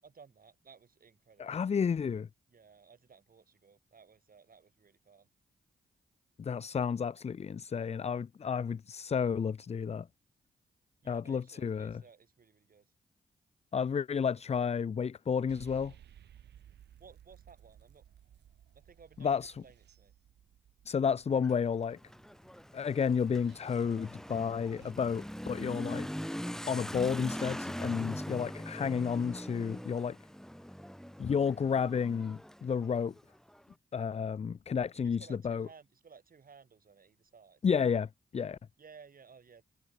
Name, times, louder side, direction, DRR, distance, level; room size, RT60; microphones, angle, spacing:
voice 1, 0.0-1.6 2.5-5.3 11.0-12.9 17.0-18.0 18.7-20.1 35.0-37.6 38.8-39.6, right 5 dB, 55° right, 6.4 m, -58 dB
voice 2, 1.4-2.3 6.4-10.1 11.1-12.0 13.7-15.9 19.2-19.5 20.9-22.0 22.7-26.1 26.7-30.2 31.2-33.1 33.9-35.7 37.6-38.6, left 6 dB, 40° left, 0.5 m, -31 dB
sound 1, 15.5-24.9, right 10 dB, 75° right, 2.1 m, -59 dB
Motorcycle / Accelerating revving vroom, 21.3-33.6, equal, 5° left, 2.3 m, -42 dB
supercardioid pair, 45°, 18 cm